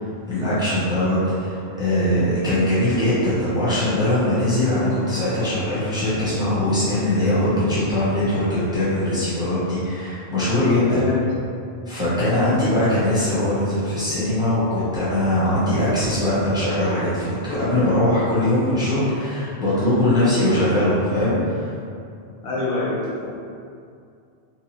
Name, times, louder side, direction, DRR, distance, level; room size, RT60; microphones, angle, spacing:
voice 1, 0.3-11.0 11.9-21.7, left 1 dB, 5° right, -11 dB, 0.6 m, -21 dB
voice 2, 10.9-11.3 22.4-23.1, left 3 dB, 75° left, -6 dB, 1.0 m, -25 dB
3.0 x 2.2 x 2.7 m, 2.4 s
omnidirectional pair, 1.1 m